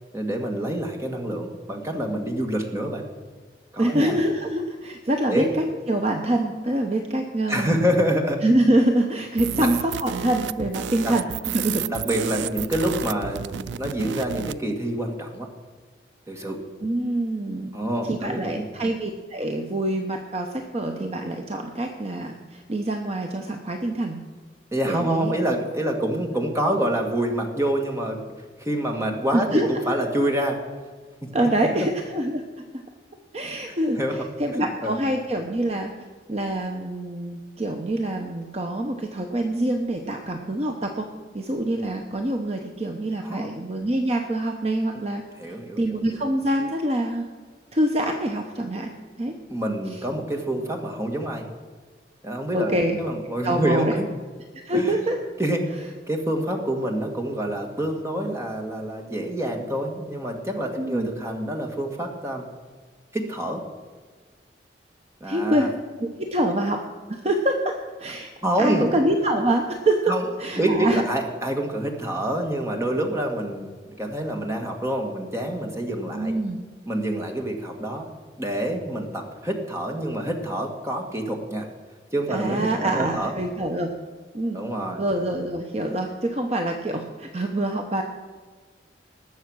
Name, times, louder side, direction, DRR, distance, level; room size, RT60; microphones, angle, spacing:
voice 1, 0.1-3.0 3.7-4.2 5.3-5.5 7.5-8.4 9.6-9.7 11.0-11.1 11.9-15.5 16.3-16.6 17.7-18.7 24.7-28.2 28.6-30.6 31.8-31.9 34.0-34.3 34.5-34.9 43.2-43.5 45.4-46.2 49.5-51.5 52.2-54.1 54.7-55.0 55.4-55.7 56.1-62.4 63.1-63.6 65.2-65.7 68.4-68.9 70.1-70.2 70.6-73.7 74.0-76.3 76.9-78.1 78.4-81.7 82.1-83.3 84.5-85.0, right 1 dB, 15° right, 2 dB, 1.7 m, -27 dB
voice 2, 3.8-7.9 8.4-11.8 16.8-17.7 18.0-24.2 24.8-25.3 29.3-30.0 31.3-32.8 33.3-35.9 36.3-41.1 41.3-45.2 45.8-47.3 47.7-48.9 49.2-49.3 49.9-50.0 52.5-53.0 53.4-54.0 54.6-55.2 60.8-61.1 65.2-65.7 66.0-68.3 68.6-70.1 70.4-71.0 72.8-72.9 76.1-76.6 82.3-83.9 84.3-84.6 85.0-88.0, right 1 dB, 35° right, 3 dB, 0.9 m, -25 dB
sound 1, 9.4-14.6, right 9 dB, 85° right, 0.3 m, -32 dB
19.5 x 7.2 x 6.3 m, 1.5 s
head